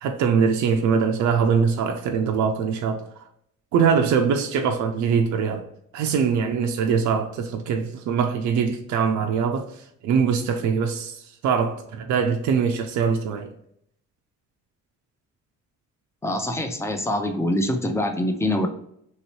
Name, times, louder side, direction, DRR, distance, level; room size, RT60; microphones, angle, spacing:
voice 1, 0.0-3.0 3.7-5.6 5.9-9.7 10.0-13.5, right 6 dB, 75° right, 0.5 m, -22 dB
voice 2, 16.2-18.7, left 1 dB, 10° left, 0.6 m, -24 dB
3.1 x 2.9 x 3.0 m
cardioid pair, 90°, 30 cm